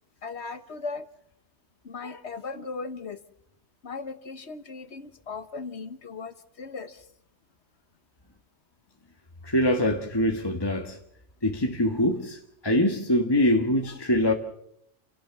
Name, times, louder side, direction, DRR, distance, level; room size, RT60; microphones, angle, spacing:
voice 1, 0.2-1.1 1.8-3.2 3.8-7.0, left 4 dB, 65° left, 1.5 m, -37 dB
voice 2, 9.4-11.0 11.4-14.3, left 1 dB, 20° left, 1.6 m, -24 dB
29.5 x 17.5 x 6.0 m
omnidirectional pair, 1.2 m